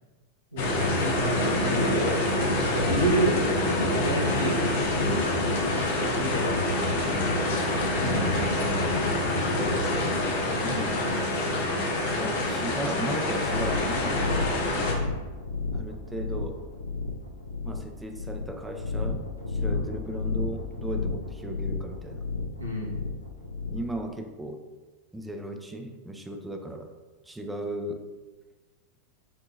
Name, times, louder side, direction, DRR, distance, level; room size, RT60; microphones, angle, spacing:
voice 1, 0.5-2.2 2.5-3.5 3.9-5.1 5.7-6.6 8.0-9.2 19.7-19.8 22.6-23.0, right 1 dB, 90° right, -4 dB, 1.0 m, -30 dB
sound 1, 0.6-14.9, left 1 dB, 55° left, 0.8 m, -26 dB
voice 2, 3.4-3.7 10.4-11.0 12.2-14.5 15.7-16.7 17.6-22.2 23.7-24.6 25.1-26.9 27.2-28.0, right 1 dB, 5° right, 4 dB, 0.5 m, -36 dB
sound 2, 13.4-24.0, left 4 dB, 85° left, 0.5 m, -32 dB
7.2 x 2.8 x 2.5 m, 1.3 s
figure-of-eight pair, 90°, 0 cm